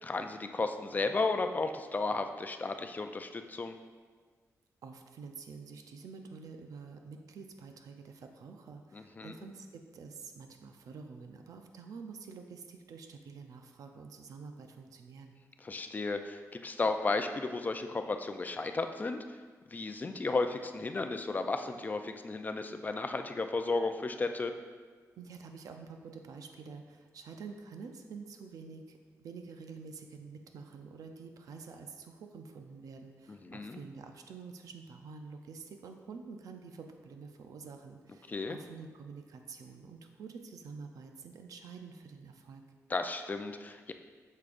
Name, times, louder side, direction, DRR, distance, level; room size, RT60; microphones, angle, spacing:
voice 1, 0.0-3.8 8.9-9.3 15.6-19.2 19.7-24.5 33.3-33.8 38.3-38.6 42.9-43.9, left 3 dB, 30° left, 7 dB, 0.4 m, -34 dB
voice 2, 4.8-15.3 25.2-42.6, right 5 dB, 85° right, 5 dB, 0.6 m, -48 dB
8.4 x 6.5 x 2.5 m, 1.5 s
wide cardioid pair, 120°, 6 cm